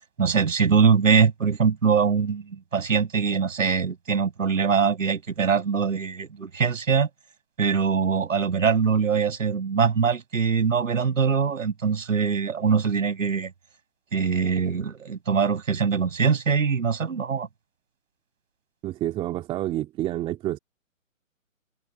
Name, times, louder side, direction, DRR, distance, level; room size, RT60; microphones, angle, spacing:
voice 1, 0.2-7.1 7.6-13.5 14.1-17.5, right 6 dB, 70° right, 7.1 m, -23 dB
voice 2, 18.8-20.6, right 14 dB, 15° right, 2.9 m, -28 dB
hypercardioid pair, 160°, 40 cm